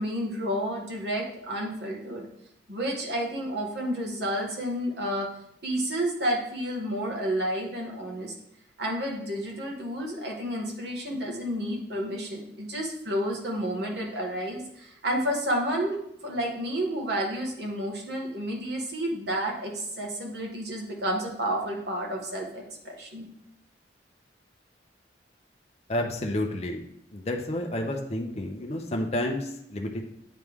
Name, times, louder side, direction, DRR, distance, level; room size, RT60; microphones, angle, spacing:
voice 1, 0.0-2.3 2.7-5.3 5.6-8.3 8.8-16.0 16.2-23.3, equal, 65° right, -1 dB, 1.5 m, -30 dB
voice 2, 25.9-26.8 27.1-30.0, left 1 dB, 35° left, 2 dB, 0.7 m, -30 dB
9.2 x 3.2 x 3.6 m, 0.77 s
head